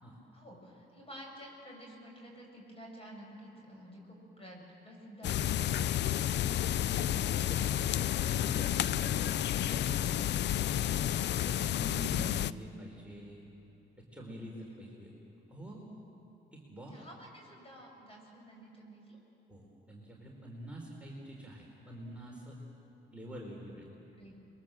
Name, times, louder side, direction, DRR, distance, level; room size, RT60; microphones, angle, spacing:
voice 1, 0.3-5.7 11.7-12.5 16.9-19.2 24.2-24.4, equal, 30° left, -1 dB, 7.7 m, -49 dB
sound 1, 5.2-12.5, left 11 dB, 60° left, 0.5 m, -31 dB
voice 2, 6.3-10.8 11.3-12.0 12.4-13.4 14.1-15.1 15.5-15.9 16.5-16.9 19.5-22.5 23.1-23.9, right 1 dB, 5° right, -3 dB, 4.3 m, -47 dB
27.0 x 22.5 x 7.7 m, 3.0 s
cardioid pair, 90°, 20 cm